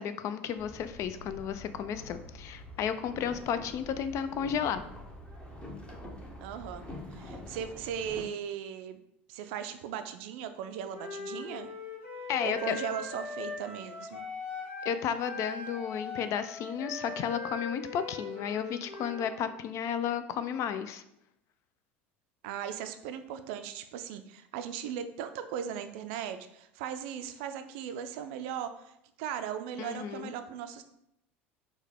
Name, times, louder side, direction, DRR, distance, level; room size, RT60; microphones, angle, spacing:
voice 1, 0.0-4.8 12.3-12.8 14.8-21.0 29.8-30.3, left 8 dB, 50° left, 11 dB, 0.3 m, -33 dB
Boat Water vehicle, 0.6-8.2, left 1 dB, 15° left, 0.9 m, -46 dB
voice 2, 6.4-6.8 7.1-9.0 9.3-11.7 12.4-14.2 22.4-28.9 29.2-30.8, right 9 dB, 65° right, 9 dB, 0.4 m, -38 dB
Wind instrument woodwind instrument, 10.9-15.0 15.2-19.4, left 4 dB, 80° left, 0.9 m, -40 dB
4.5 x 2.2 x 3.5 m, 0.80 s
hypercardioid pair, 70°, 7 cm